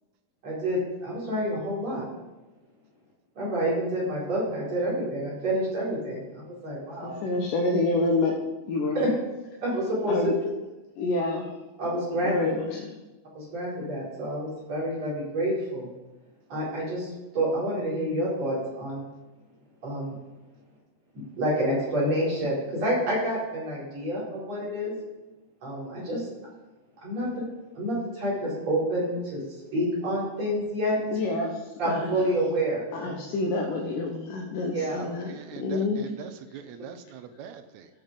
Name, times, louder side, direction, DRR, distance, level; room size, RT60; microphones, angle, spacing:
voice 1, 0.4-2.0 3.4-7.2 8.9-9.1 9.6-10.3 11.8-12.5 13.3-15.9 16.5-19.1 19.8-20.1 21.1-25.0 25.6-26.3 27.0-27.5 27.8-29.4 29.7-31.2 31.8-33.2 34.7-35.1, right 1 dB, 55° right, -7 dB, 5.3 m, -28 dB
voice 2, 7.0-8.3 8.7-9.1 10.1-10.4 11.0-11.5 12.2-12.9 31.1-31.5 31.8-32.5 32.9-35.3 35.6-36.0, left 2 dB, 85° left, 0 dB, 2.7 m, -27 dB
voice 3, 35.3-37.9, right 8 dB, 75° right, 9 dB, 1.8 m, -42 dB
15.0 x 5.8 x 5.2 m, 1.1 s
omnidirectional pair, 3.6 m